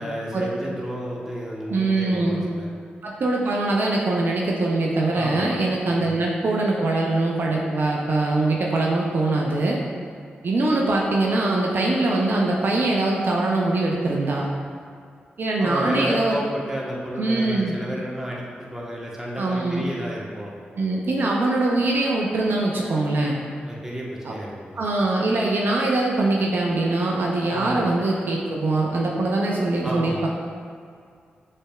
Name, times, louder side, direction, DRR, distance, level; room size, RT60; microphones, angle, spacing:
voice 1, 0.0-2.7 5.1-5.5 5.9-6.2 15.6-20.5 23.7-24.8 27.5-27.8 29.8-30.3, equal, 10° right, -4 dB, 1.1 m, -32 dB
voice 2, 1.7-2.4 3.0-9.8 10.4-14.5 15.4-16.4 17.2-17.7 19.4-19.9 20.8-23.4 24.2-24.3 24.8-30.3, right 2 dB, 65° right, -2 dB, 0.6 m, -22 dB
6.4 x 3.3 x 2.3 m, 2.2 s
cardioid pair, 50°, 4 cm